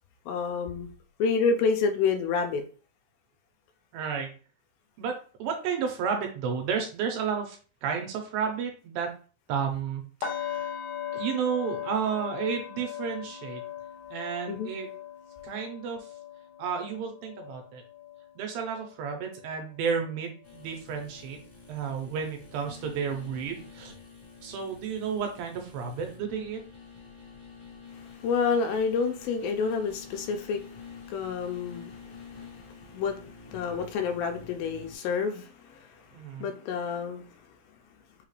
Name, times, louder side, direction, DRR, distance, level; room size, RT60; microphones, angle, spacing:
voice 1, 0.3-0.9 1.2-2.6 14.5-14.7 28.2-30.6 31.1-32.1 32.9-33.2 33.5-36.1 36.3-37.3, left 5 dB, 85° left, 6 dB, 2.4 m, -28 dB
voice 2, 3.9-4.3 5.0-9.1 9.5-10.7 11.1-13.6 14.1-14.9 15.4-16.1 16.6-17.8 18.4-21.4 21.7-23.9 24.4-26.6 36.1-36.5, right 6 dB, 85° right, 3 dB, 2.7 m, -32 dB
sound 1, 10.2-20.1 20.5-20.8 21.2-21.3, left 9 dB, 70° left, 2.0 m, -39 dB
sound 2, 20.4-35.0, left 5 dB, 45° left, 1.6 m, -48 dB
6.0 x 2.4 x 3.2 m, 0.38 s
omnidirectional pair, 4.1 m